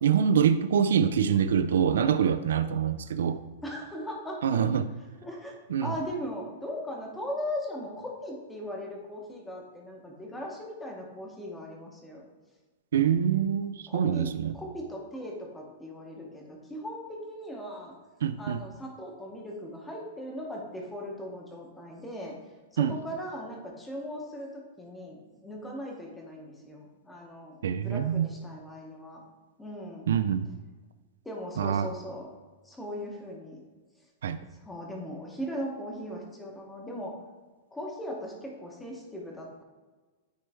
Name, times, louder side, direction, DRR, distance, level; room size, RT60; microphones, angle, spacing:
voice 1, 0.0-3.4 4.4-4.9 5.7-5.9 12.9-14.6 18.2-18.6 22.8-22.9 27.6-28.3 30.1-30.5 31.6-31.9 34.2-34.4, right 8 dB, 85° right, 11 dB, 0.3 m, -25 dB
voice 2, 3.6-4.4 5.2-12.3 13.9-17.9 18.4-22.3 22.7-27.6 27.8-29.2 29.6-30.1 31.2-32.3 32.6-33.6 34.6-37.1 37.7-39.6, equal, 5° left, -1 dB, 0.8 m, -38 dB
9.3 x 3.1 x 3.4 m, 1.3 s
supercardioid pair, 175°, 0 cm